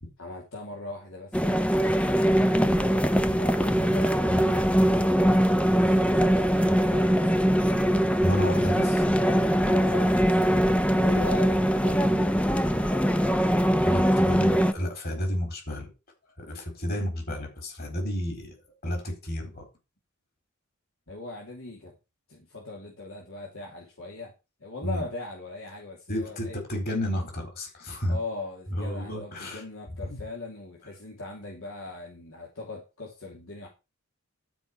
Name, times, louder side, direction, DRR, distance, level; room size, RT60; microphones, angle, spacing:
voice 1, 0.2-2.2 3.0-7.5 9.6-13.4 21.1-21.9 22.3-24.3 24.6-26.6 28.1-33.7, left 2 dB, 75° left, -2 dB, 2.8 m, -40 dB
sound 1, 1.3-14.7, equal, 5° left, 0.6 m, -22 dB
voice 2, 8.2-9.0 13.8-15.9 16.4-18.5 18.8-19.7 24.8-25.0 26.1-28.2 28.7-29.6 30.1-30.2, equal, 45° left, 3 dB, 4.2 m, -31 dB
12.0 x 5.0 x 6.0 m, 0.28 s
head